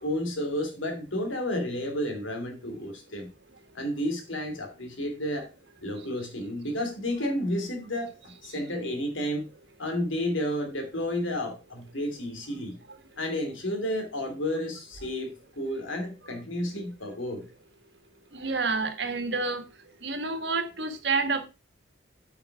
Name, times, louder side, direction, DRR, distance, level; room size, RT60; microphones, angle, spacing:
voice 1, 0.0-3.3 3.7-5.5 5.8-9.5 9.8-12.8 13.2-17.4, left 1 dB, 90° left, 2.7 m, -31 dB
voice 2, 18.3-19.6 20.0-21.4, right 4 dB, 65° right, 1.6 m, -28 dB
8.6 x 5.8 x 4.7 m
head